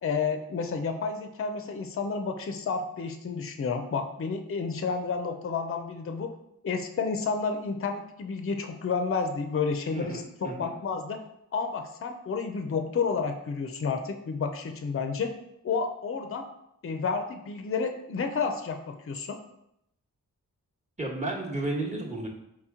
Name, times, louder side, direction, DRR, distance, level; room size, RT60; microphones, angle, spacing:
voice 1, 0.0-6.3 6.6-11.2 11.5-15.3 15.6-16.5 16.8-19.4, left 5 dB, 40° left, 6 dB, 0.5 m, -30 dB
voice 2, 9.9-10.7 21.0-22.3, right 2 dB, 20° right, -2 dB, 1.1 m, -33 dB
4.6 x 2.9 x 3.6 m, 0.80 s
cardioid pair, 55°, 35 cm